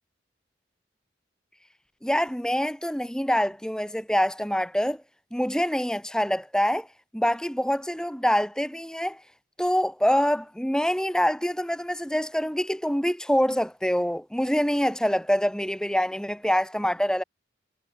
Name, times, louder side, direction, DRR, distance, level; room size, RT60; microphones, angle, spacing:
voice 1, 2.0-5.0 5.3-6.9 7.1-9.2 9.6-17.2, equal, 5° left, 2.3 m, -25 dB
head